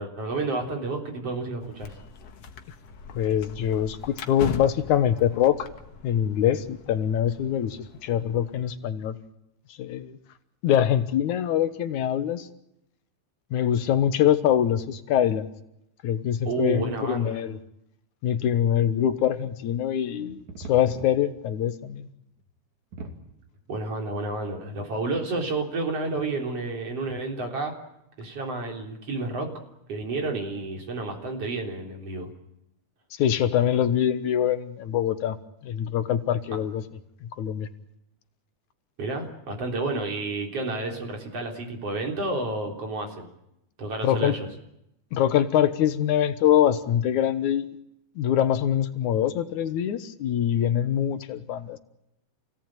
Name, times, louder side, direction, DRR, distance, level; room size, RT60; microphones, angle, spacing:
voice 1, 0.0-2.0 16.4-17.4 23.7-27.7 28.2-29.5 29.9-32.3 39.0-43.3 43.8-44.5, right 3 dB, 50° right, 2 dB, 4.8 m, -30 dB
sound 1, 1.6-8.7, left 5 dB, 55° left, 2.4 m, -41 dB
voice 2, 3.1-5.7 6.0-9.2 9.8-10.2 10.6-12.5 13.5-15.5 16.0-17.6 18.2-22.1 33.2-35.4 35.6-36.8 37.4-37.7 44.0-44.4 45.1-47.6 48.2-51.8, left 10 dB, 80° left, 11 dB, 2.6 m, -24 dB
sound 2, 20.3-21.7 22.0-22.1 22.4-22.5 22.9-23.6 24.3-24.4, right 2 dB, 70° right, 3.9 m, -41 dB
28.0 x 17.5 x 9.1 m, 0.82 s
omnidirectional pair, 3.4 m